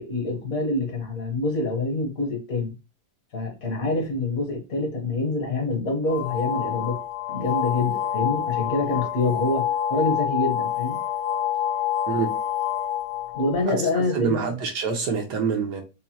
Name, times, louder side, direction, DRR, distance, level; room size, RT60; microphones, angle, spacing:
voice 1, 0.0-2.7 3.3-7.0 7.3-11.0 13.3-14.5, left 2 dB, 60° left, 1.4 m, -26 dB
sound 1, 6.1-13.6, left 10 dB, 75° left, 1.2 m, -27 dB
voice 2, 13.7-15.8, right 5 dB, 80° right, 1.5 m, -26 dB
5.8 x 2.1 x 2.8 m
omnidirectional pair, 1.7 m